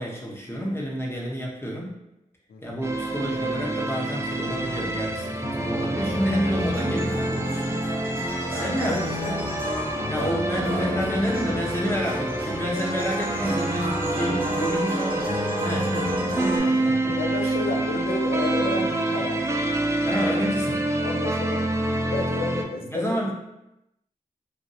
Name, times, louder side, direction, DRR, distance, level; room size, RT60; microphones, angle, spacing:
voice 1, 0.0-1.9 2.6-7.7 8.5-9.0 9.2-9.5 10.1-16.1 16.4-17.1 17.4-17.5 20.0-20.9 22.9-23.3, equal, 15° left, -3 dB, 0.9 m, -29 dB
voice 2, 2.5-2.8 8.7-9.4 10.1-10.8 15.7-16.0 16.5-19.6 21.0-21.6 22.0-23.3, left 3 dB, 80° left, 1 dB, 0.5 m, -32 dB
sound 1, 2.8-22.6, right 1 dB, 20° right, 0.4 m, -27 dB
sound 2, 5.4-16.6, equal, 35° right, 0.8 m, -31 dB
3.1 x 2.5 x 2.6 m, 0.88 s
cardioid pair, 45°, 15 cm